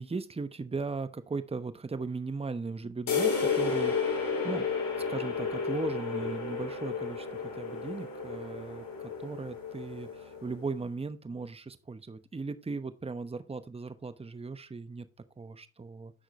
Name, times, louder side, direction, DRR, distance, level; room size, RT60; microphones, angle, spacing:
voice 1, 0.0-3.9 4.4-4.7 5.1-15.1 15.4-16.1, right 4 dB, 15° right, 12 dB, 0.9 m, -37 dB
sound 1, 3.1-10.6, left 5 dB, 50° left, 3.0 m, -32 dB
9.9 x 6.3 x 3.2 m, 0.31 s
supercardioid pair, 65°, 43 cm